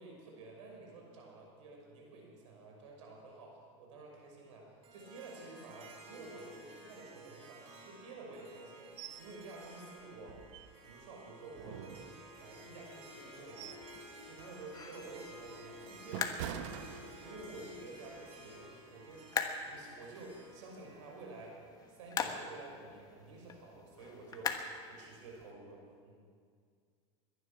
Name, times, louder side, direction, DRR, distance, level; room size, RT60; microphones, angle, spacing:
voice 1, 0.0-8.9 9.2-10.4 10.8-13.8 14.2-16.9 17.2-19.3 19.6-21.6 21.9-24.6 24.9-26.2, right 3 dB, 85° right, -1 dB, 5.9 m, -51 dB
Harp, 4.8-22.1, equal, 40° right, 3.8 m, -54 dB
sound 1, 9.0-9.3 9.6-9.7 10.2-11.0 11.5-12.6 13.1-14.0 14.3-14.6 15.1-17.6 18.0-18.2, right 10 dB, 70° right, 0.9 m, -46 dB
sound 2, 12.3-25.5, left 6 dB, 25° left, 1.2 m, -44 dB
21.5 x 11.0 x 6.1 m, 2.1 s
supercardioid pair, 135°, 16 cm